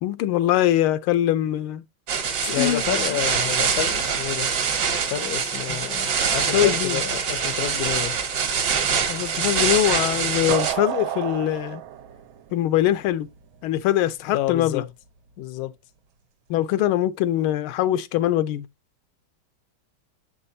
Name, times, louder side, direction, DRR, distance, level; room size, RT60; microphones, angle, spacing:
voice 1, 0.0-1.8 2.5-2.8 3.1-3.2 5.7-5.8 6.5-7.0 9.1-11.8 12.5-13.3 13.6-14.8 16.5-18.7, left 13 dB, 85° left, 1.5 m, -22 dB
sound 1, 2.1-10.7, right 6 dB, 60° right, 1.6 m, -24 dB
voice 2, 2.4-4.5 5.1-8.2 14.3-14.9 15.4-15.7, left 13 dB, 70° left, 0.9 m, -29 dB
sound 2, 10.5-13.3, right 12 dB, 80° right, 1.5 m, -30 dB
7.6 x 5.5 x 2.6 m
omnidirectional pair, 2.3 m